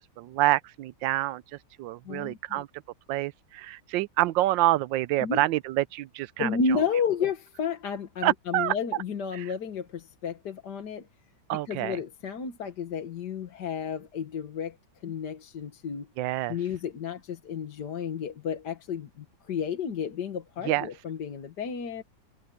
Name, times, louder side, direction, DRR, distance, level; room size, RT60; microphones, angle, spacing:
voice 1, 0.0-1.4 1.8-2.7 3.1-6.8 8.2-8.7 9.3-9.5 11.5-12.0 16.2-16.6 20.6-20.9, right 16 dB, 85° right, 1.3 m, -27 dB
voice 2, 2.1-2.6 5.2-5.4 6.4-11.1 11.7-14.8 15.0-16.1 16.5-22.0, left 6 dB, 65° left, 2.0 m, -32 dB
omnidirectional pair, 2.0 m